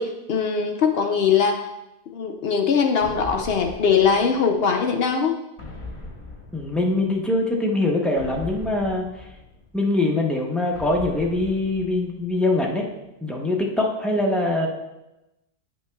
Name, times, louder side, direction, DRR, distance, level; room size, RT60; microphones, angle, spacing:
voice 1, 0.0-1.6 2.1-5.4, left 6 dB, 70° left, 4 dB, 0.5 m, -21 dB
sound 1, 3.0-4.8 5.6-7.3 8.2-9.9 10.7-12.5, left 2 dB, 25° left, 0.8 m, -40 dB
voice 2, 6.5-9.1 9.7-12.9 13.2-14.7, left 2 dB, ahead, -1 dB, 0.3 m, -23 dB
9.7 x 5.9 x 2.3 m, 0.95 s
omnidirectional pair, 1.6 m